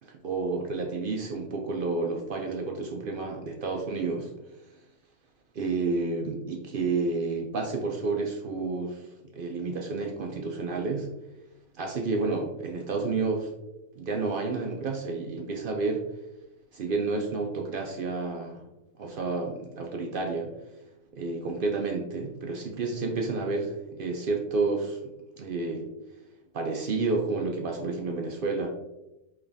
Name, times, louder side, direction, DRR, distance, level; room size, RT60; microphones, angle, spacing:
voice 1, 0.0-4.3 5.5-11.1 11.7-13.5 14.0-16.0 16.7-18.6 19.0-20.5 21.1-25.0 25.4-25.9 26.5-28.7, right 3 dB, 75° right, 1 dB, 0.4 m, -30 dB
5.1 x 3.2 x 2.6 m, 0.95 s
omnidirectional pair, 1.5 m